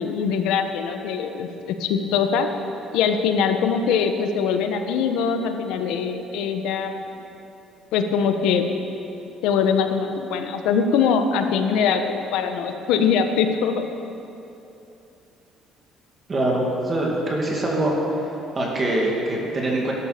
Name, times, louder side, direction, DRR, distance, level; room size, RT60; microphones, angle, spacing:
voice 1, 0.0-2.5 2.9-7.1 7.9-8.7 9.4-13.9, left 6 dB, 85° left, 6 dB, 1.3 m, -22 dB
voice 2, 16.3-17.9 18.5-19.9, right 1 dB, 20° right, -2 dB, 2.5 m, -23 dB
16.0 x 12.5 x 6.8 m, 2.9 s
cardioid pair, 165°, 0 cm